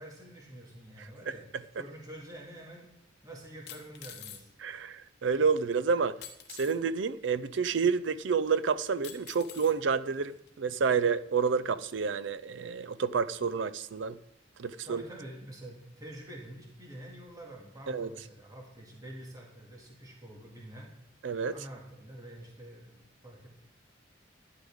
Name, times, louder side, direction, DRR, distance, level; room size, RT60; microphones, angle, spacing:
voice 1, 0.0-1.5 1.8-2.9 3.2-4.5 14.8-20.9 21.5-23.5, right 1 dB, 20° right, 2.2 m, -47 dB
sound 1, 3.7-4.4 6.2-6.8 7.7-7.8 9.0-9.8 10.5-10.6, left 9 dB, 60° left, 1.0 m, -46 dB
voice 2, 4.6-6.2 6.6-14.2 14.6-15.0 17.9-18.1 21.2-21.6, right 5 dB, 70° right, 0.5 m, -29 dB
11.5 x 10.5 x 3.6 m
head